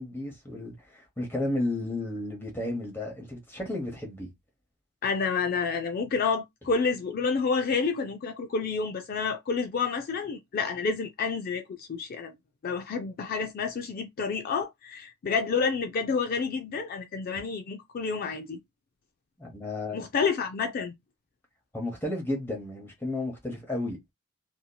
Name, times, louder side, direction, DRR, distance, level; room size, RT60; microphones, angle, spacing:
voice 1, 0.0-4.3 19.4-20.0 21.7-24.1, left 1 dB, 10° left, 0.9 m, -33 dB
voice 2, 5.0-12.3 12.6-18.6 19.9-20.9, left 5 dB, 40° left, 0.3 m, -29 dB
2.8 x 2.7 x 2.2 m
head